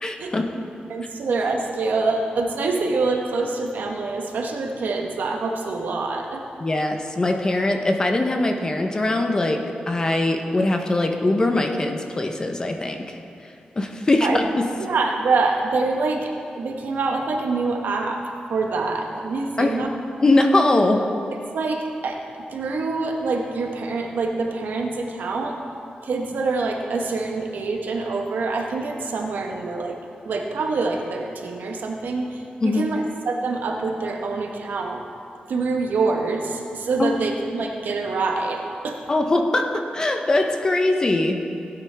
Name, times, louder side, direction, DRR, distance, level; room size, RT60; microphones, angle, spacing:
voice 1, 0.0-0.5 6.6-9.6 9.9-13.2 13.8-14.5 19.6-19.8 20.2-21.1 32.6-32.8 37.0-37.1 39.1-41.4, left 2 dB, 25° left, 4 dB, 0.7 m, -21 dB
voice 2, 0.9-6.4 14.2-14.4 14.8-16.3 16.6-18.2 18.5-19.9 21.5-22.2 22.5-25.6 26.0-30.0 30.2-35.0 35.5-39.0, right 3 dB, 85° right, 2 dB, 1.2 m, -25 dB
16.5 x 9.3 x 3.4 m, 2.6 s
wide cardioid pair, 180°, 3 cm